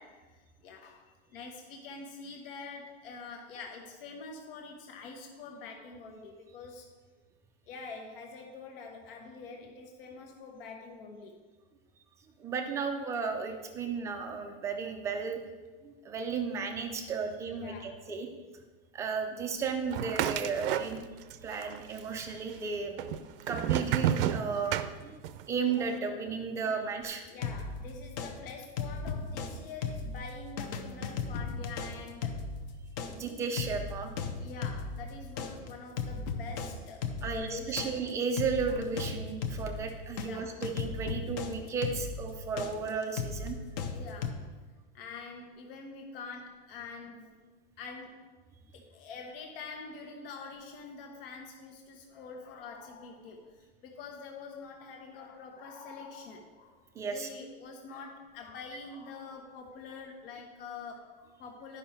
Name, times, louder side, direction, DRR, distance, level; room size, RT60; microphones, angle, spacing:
voice 1, 0.0-6.9 7.7-11.4 17.6-18.0 26.5-26.6 27.3-32.5 34.4-37.9 38.7-38.8 40.2-40.5 43.9-44.5 44.9-47.4 47.8-48.3 48.7-61.8, left 4 dB, 65° left, 2 dB, 1.2 m, -46 dB
voice 2, 12.4-15.4 15.8-18.3 18.9-21.0 21.4-23.0 23.5-24.8 25.0-25.2 25.5-27.3 33.1-34.1 37.2-43.6 57.0-57.3, right 5 dB, 10° right, 4 dB, 0.3 m, -34 dB
sound 1, 19.9-21.4 21.6-22.4 23.0-25.5, right 10 dB, 65° right, 0.5 m, -30 dB
sound 2, 27.0-29.5 29.8-40.3 40.6-44.3, left 5 dB, 45° left, 0.9 m, -36 dB
11.0 x 5.4 x 4.3 m, 1.3 s
supercardioid pair, 165°, 30 cm